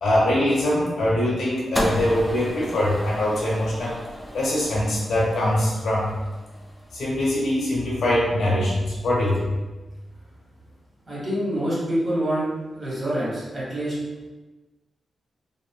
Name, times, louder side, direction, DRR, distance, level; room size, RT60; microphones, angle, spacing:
voice 1, 0.0-4.0 4.3-6.1 6.9-9.6, left 1 dB, 85° left, -5 dB, 0.8 m, -23 dB
sound 1, 1.7-8.1, left 1 dB, 15° left, 0.4 m, -34 dB
voice 2, 11.1-12.5 12.7-13.9, right 1 dB, 30° right, -8 dB, 1.4 m, -26 dB
2.8 x 2.5 x 2.2 m, 1.2 s
wide cardioid pair, 110°, 0 cm